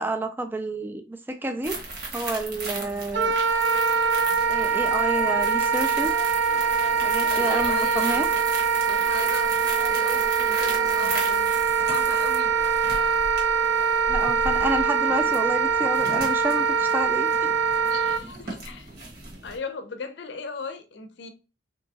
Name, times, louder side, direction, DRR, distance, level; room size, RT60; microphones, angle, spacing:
voice 1, 0.0-1.8 2.1-3.3 4.5-6.1 7.0-8.3 14.1-17.5, right 1 dB, 10° right, 0.3 m, -29 dB
sound 1, 1.6-19.6, right 2 dB, 55° right, 1.2 m, -36 dB
Wind instrument woodwind instrument, 3.1-18.2, right 5 dB, 80° right, 0.5 m, -23 dB
voice 2, 7.3-8.4 8.7-11.5 11.8-12.5 17.9-18.9 19.4-21.3, left 3 dB, 65° left, 0.5 m, -37 dB
3.4 x 2.7 x 2.7 m
head